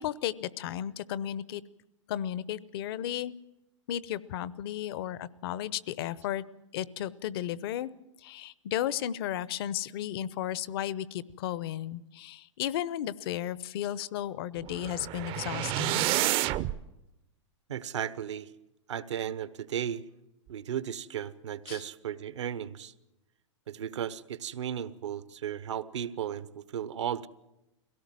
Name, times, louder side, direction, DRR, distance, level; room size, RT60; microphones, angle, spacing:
voice 1, 0.0-1.6 2.1-3.3 3.9-6.4 6.7-7.9 8.2-16.1 21.7-21.8, left 11 dB, 55° left, 19 dB, 0.9 m, -34 dB
sound 1, 14.6-16.8, right 14 dB, 35° right, 0.7 m, -29 dB
voice 2, 17.7-18.5 18.9-20.0 20.5-22.9 23.7-27.3, right 9 dB, 70° right, 15 dB, 1.1 m, -35 dB
23.5 x 17.0 x 7.6 m, 0.95 s
hypercardioid pair, 110°, 16 cm